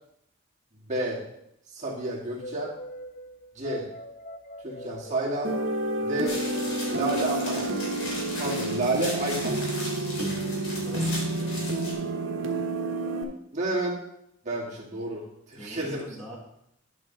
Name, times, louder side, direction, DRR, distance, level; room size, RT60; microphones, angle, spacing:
voice 1, 0.7-1.2 1.7-2.7 3.5-3.9 4.6-5.5 6.0-6.4 6.9-7.7 8.4-9.7 13.5-14.0 14.4-16.2, right 2 dB, 35° right, -4 dB, 2.0 m, -30 dB
sound 1, 2.4-8.0, equal, 45° left, 0.4 m, -42 dB
sound 2, 5.4-13.2, right 2 dB, 70° right, 1.2 m, -29 dB
sound 3, 6.3-11.9, left 1 dB, 85° left, 3.4 m, -37 dB
voice 2, 10.8-11.6 15.6-16.4, right 1 dB, ahead, -5 dB, 1.7 m, -42 dB
10.5 x 5.8 x 4.0 m, 0.77 s
head